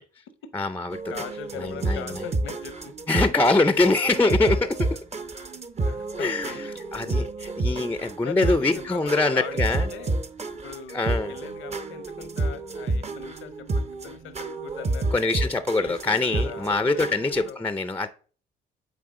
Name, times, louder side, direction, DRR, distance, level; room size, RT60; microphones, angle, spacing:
voice 1, 0.5-1.0 1.6-2.2 3.1-5.0 6.2-9.9 10.9-11.4 15.1-18.1, left 3 dB, 10° left, 0.4 m, -24 dB
sound 1, 0.9-17.5, right 2 dB, 35° right, 0.8 m, -30 dB
voice 2, 1.1-2.9 5.3-6.6 7.7-7.9 8.2-9.6 9.9-10.2 10.6-13.7 14.0-15.1 15.8-17.1 17.5-17.6, left 9 dB, 90° left, 0.8 m, -40 dB
8.6 x 3.5 x 3.7 m
cardioid pair, 90°, 20 cm